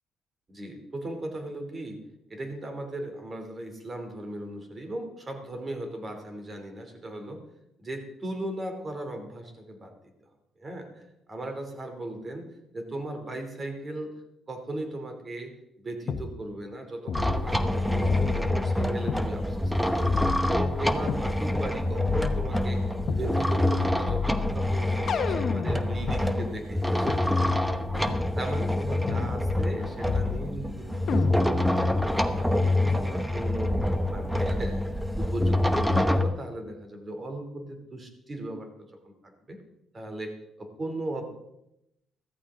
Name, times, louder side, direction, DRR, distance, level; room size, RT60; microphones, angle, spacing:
voice 1, 0.5-2.0 2.3-7.4 7.8-9.9 10.6-10.9 11.3-12.5 12.7-14.1 14.5-15.5 15.8-27.5 27.9-32.0 32.4-33.7 34.0-38.7 39.0-39.6 39.9-40.3 40.6-41.3, right 1 dB, 30° right, 5 dB, 3.0 m, -37 dB
sound 1, 16.1-16.3 17.1-17.7 18.1-19.3 20.1-21.3 22.1-23.3 24.1-26.2 27.1-27.2 28.1-28.3 29.1-29.8 30.1-30.7 31.1-31.7, left 6 dB, 60° left, 1.1 m, -32 dB
sound 2, 17.1-36.2, left 1 dB, 5° right, 1.0 m, -26 dB
14.0 x 14.0 x 3.8 m, 0.84 s
cardioid pair, 90°, 0 cm